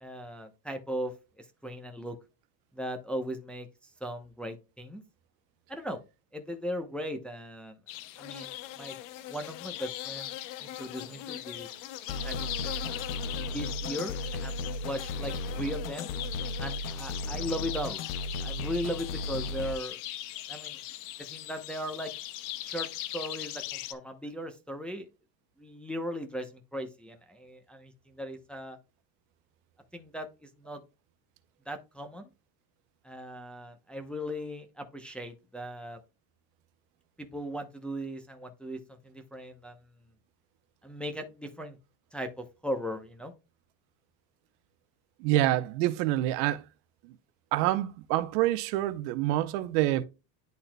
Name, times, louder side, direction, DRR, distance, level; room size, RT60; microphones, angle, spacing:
voice 1, 0.0-2.2 2.7-3.7 4.0-5.0 5.7-6.0 6.3-7.8 8.2-9.0 9.3-10.3 10.6-11.7 12.2-12.4 12.6-12.9 13.5-14.5 14.8-16.1 16.6-18.0 18.3-20.0 20.5-20.8 21.3-22.1 22.6-25.1 25.6-28.8 29.9-30.8 31.7-32.3 33.0-36.0 37.2-39.8 40.8-41.8 42.1-43.3, equal, ahead, 0.7 m, -38 dB
sound 1, 7.9-23.9, left 14 dB, 75° left, 0.9 m, -40 dB
sound 2, 12.1-19.7, left 1 dB, 45° left, 0.6 m, -36 dB
voice 2, 45.2-46.6 47.5-50.0, right 15 dB, 90° right, 0.9 m, -27 dB
11.0 x 4.1 x 2.2 m
cardioid pair, 135°, 46 cm